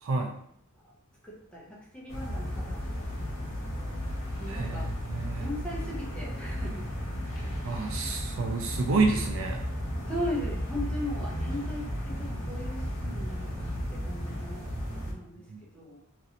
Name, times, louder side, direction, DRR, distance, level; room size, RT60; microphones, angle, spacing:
voice 1, 1.2-3.9 4.4-4.9 5.4-6.9 7.3-7.4 8.0-8.2 8.5-8.6 10.1-14.6 15.1-15.4 15.7-16.0, left 1 dB, 5° left, -5 dB, 0.7 m, -38 dB
sound 1, 2.1-15.1, equal, 75° left, 1.0 m, -34 dB
voice 2, 4.5-5.4 7.6-9.6 15.5-15.6, right 3 dB, 65° right, 2 dB, 0.4 m, -29 dB
3.0 x 2.5 x 2.8 m, 0.68 s
head